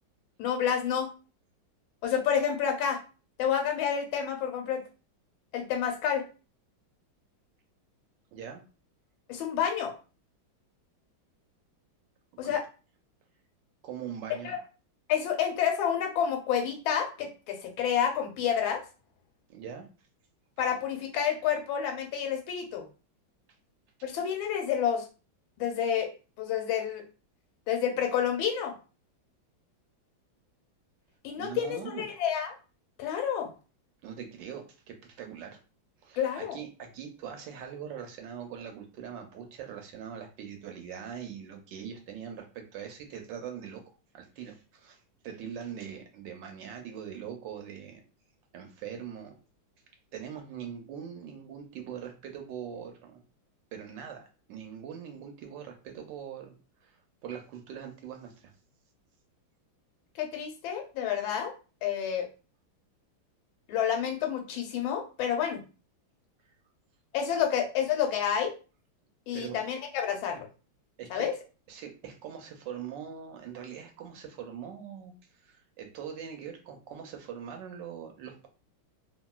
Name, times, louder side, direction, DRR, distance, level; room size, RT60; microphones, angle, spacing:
voice 1, 0.4-1.1 2.0-3.0 3.4-4.8 5.5-6.2 9.3-9.9 12.4-12.6 14.4-14.6 15.1-18.8 20.6-22.8 24.0-25.0 25.6-26.1 26.4-27.0 27.7-28.7 31.2-32.5 33.0-33.5 36.2-36.6 60.2-61.5 61.8-62.3 63.7-65.6 67.1-68.5 69.3-70.5 71.1-71.4, left 8 dB, 85° left, 3 dB, 1.4 m, -29 dB
voice 2, 8.3-8.6 12.4-12.5 13.8-14.5 19.5-19.8 31.3-32.0 34.0-35.6 36.0-43.8 44.1-48.0 48.5-49.4 50.1-53.2 53.7-56.5 56.8-58.5 69.3-69.7 71.0-71.3 71.7-75.1 75.4-78.5, right 8 dB, 75° right, 3 dB, 1.2 m, -42 dB
2.8 x 2.8 x 2.3 m, 0.34 s
omnidirectional pair, 2.2 m